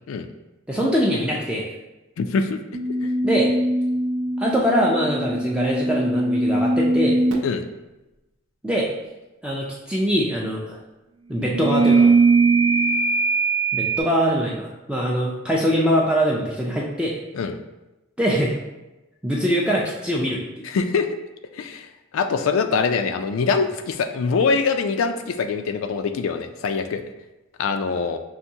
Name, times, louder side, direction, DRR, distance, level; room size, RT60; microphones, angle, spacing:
voice 1, 0.7-1.8 3.2-3.5 4.4-7.1 8.6-8.9 9.4-10.8 11.3-12.1 13.7-17.2 18.2-18.5 19.2-20.4, equal, 5° right, -3 dB, 0.3 m, -22 dB
voice 2, 2.2-2.6 3.0-3.1 7.4-7.7 17.3-17.5 20.6-21.1 21.5-21.9 22.1-27.0 27.6-28.2, left 5 dB, 80° left, 8 dB, 0.3 m, -23 dB
sound 1, 2.7-7.6 11.4-14.0, right 3 dB, 85° right, 0.5 m, -20 dB
5.7 x 2.6 x 2.7 m, 1.0 s
head